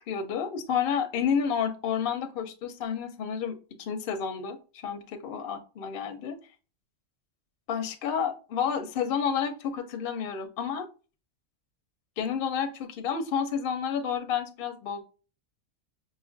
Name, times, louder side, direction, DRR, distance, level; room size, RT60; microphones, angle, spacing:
voice 1, 0.1-6.4 7.7-10.9 12.2-15.0, left 7 dB, 60° left, 7 dB, 0.6 m, -30 dB
5.3 x 2.4 x 2.5 m, 0.35 s
omnidirectional pair, 1.3 m